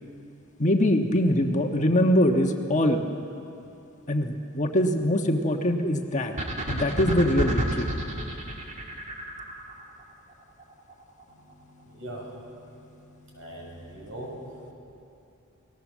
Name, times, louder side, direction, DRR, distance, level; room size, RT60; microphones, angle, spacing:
voice 1, 0.6-3.0 4.1-6.3 6.7-7.9, left 1 dB, 35° left, 3 dB, 1.4 m, -23 dB
sound 1, 6.4-9.8, right 1 dB, 35° right, 2.0 m, -29 dB
voice 2, 11.3-14.7, right 1 dB, 65° right, -1 dB, 6.9 m, -42 dB
30.0 x 19.0 x 7.4 m, 2.8 s
head